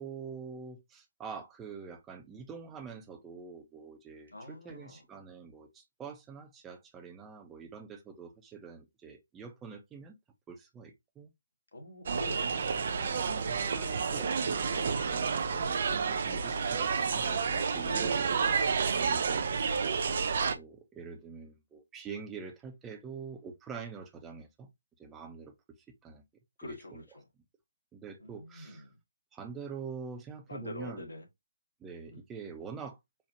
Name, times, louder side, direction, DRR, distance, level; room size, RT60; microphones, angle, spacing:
voice 1, 0.0-10.2 10.5-11.3 13.0-18.7 18.9-19.5 20.5-24.7 25.0-25.5 26.0-26.2 26.6-27.0 27.9-28.9 29.3-31.1 31.8-33.0, right 5 dB, 10° right, 0.7 m, -45 dB
voice 2, 4.3-5.0 11.7-12.7 13.8-14.8 17.8-18.0 26.6-27.2 28.2-29.0 30.5-31.2 32.1-32.2, left 2 dB, 75° left, 1.9 m, -45 dB
sound 1, 12.1-20.6, right 5 dB, 50° right, 0.5 m, -30 dB
4.5 x 2.4 x 2.7 m
figure-of-eight pair, 150°, 0 cm